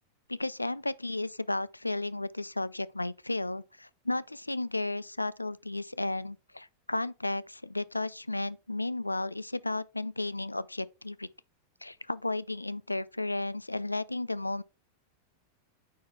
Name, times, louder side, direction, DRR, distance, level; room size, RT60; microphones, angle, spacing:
voice 1, 0.3-11.3 11.8-14.6, left 2 dB, 85° left, 0.3 m, -33 dB
9.3 x 4.4 x 3.1 m
figure-of-eight pair, 90°, 0 cm